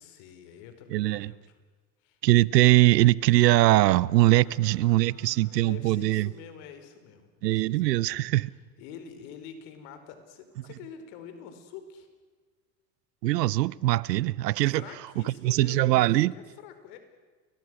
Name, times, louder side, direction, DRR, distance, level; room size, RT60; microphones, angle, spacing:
voice 1, 0.0-1.4 2.0-2.2 4.4-8.0 8.4-12.1 14.7-17.0, left 7 dB, 65° left, 4.8 m, -46 dB
voice 2, 0.9-1.3 2.2-6.3 7.4-8.5 13.2-14.8 15.2-16.3, right 17 dB, 85° right, 0.8 m, -22 dB
29.5 x 23.0 x 6.3 m
hypercardioid pair, 85°, 48 cm